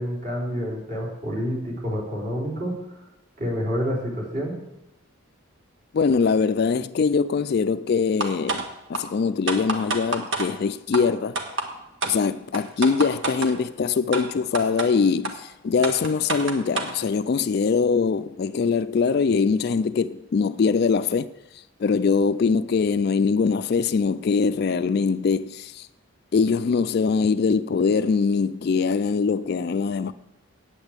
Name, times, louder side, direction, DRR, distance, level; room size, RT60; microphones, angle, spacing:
voice 1, 0.0-2.8 3.4-4.6, equal, 40° right, 4.1 m, -28 dB
voice 2, 5.9-11.4 12.0-21.3 21.8-25.9 26.3-30.1, left 5 dB, 45° left, 0.3 m, -22 dB
sound 1, 8.2-8.6 8.9-9.0 9.5-10.5 10.9-11.0 11.4-11.7 12.0-12.1 12.5-13.5 14.1-14.2 14.5-14.9 15.2-15.3 15.8-16.9, right 3 dB, 60° right, 1.5 m, -27 dB
8.8 x 8.7 x 8.1 m
head